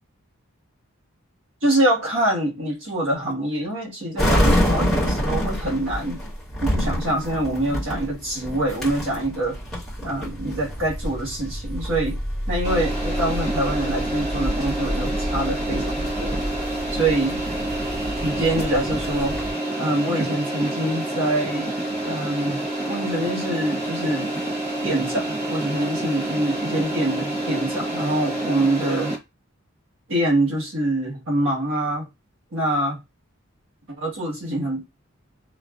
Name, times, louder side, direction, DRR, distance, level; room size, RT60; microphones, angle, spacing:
voice 1, 1.6-6.2 6.6-9.6 10.0-12.2 12.5-16.4 16.9-17.4 18.2-19.4 19.8-21.7 22.0-22.6 22.9-24.3 24.8-29.2 30.1-32.1 32.5-33.0 34.0-34.8, right 1 dB, 65° right, 1.2 m, -25 dB
Security screening at Perth Airport, 4.2-19.5, equal, 5° left, 1.2 m, -27 dB
sound 1, 12.6-29.2, right 1 dB, 30° right, 0.8 m, -28 dB
2.5 x 2.4 x 2.3 m
head